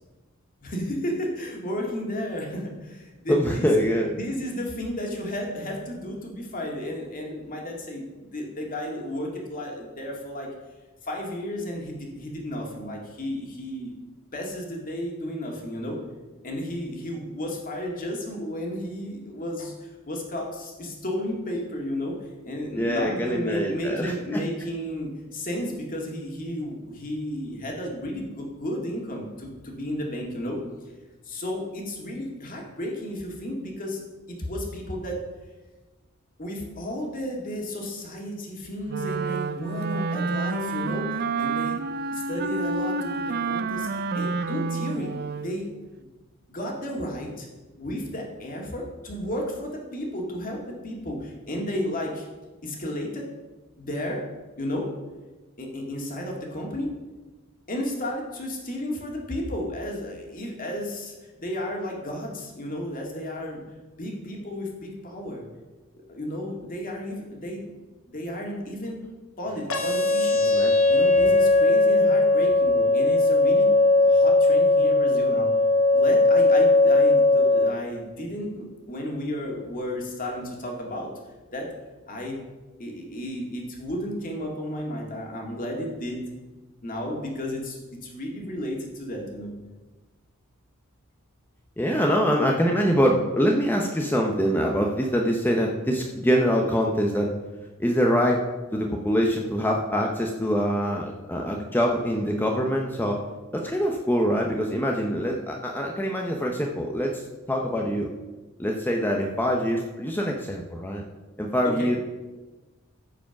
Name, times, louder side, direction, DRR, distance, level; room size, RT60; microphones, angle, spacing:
voice 1, 0.6-3.7 4.1-10.5 11.0-13.9 14.3-16.0 16.4-22.1 22.4-30.6 31.2-34.0 34.3-35.2 36.4-41.8 42.1-45.1 45.4-45.7 46.0-46.1 46.5-47.5 47.8-52.2 52.6-53.3 53.8-54.2 54.6-54.9 55.6-56.9 57.7-63.6 64.0-65.4 66.1-67.6 68.1-69.0 69.4-70.5 70.9-75.5 75.9-81.1 81.5-81.7 82.1-82.4 82.8-86.2 86.8-89.5 111.6-112.0, equal, 40° left, 0 dB, 2.2 m, -33 dB
voice 2, 3.3-4.2 22.8-24.4 70.4-70.7 71.3-71.4 91.8-97.3 97.8-98.4 98.7-103.2 103.5-108.1 108.6-111.0 111.4-112.0, equal, 10° left, 0 dB, 0.8 m, -24 dB
Wind instrument woodwind instrument, 38.9-45.6, right 4 dB, 50° right, 0.5 m, -29 dB
sound 1, 69.7-77.7, left 2 dB, 80° left, 1.3 m, -19 dB
14.5 x 5.0 x 5.8 m, 1.2 s
head